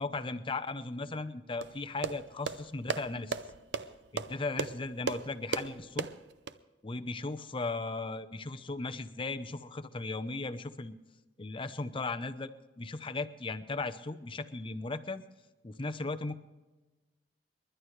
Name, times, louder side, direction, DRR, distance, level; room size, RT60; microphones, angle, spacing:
voice 1, 0.0-3.4 4.1-6.1 6.8-10.9 11.4-12.5 12.8-15.2 15.6-16.4, left 3 dB, 30° left, 9 dB, 0.7 m, -37 dB
sound 1, 1.6-6.5, right 4 dB, 70° right, 0.7 m, -37 dB
29.5 x 11.5 x 3.2 m, 1.2 s
head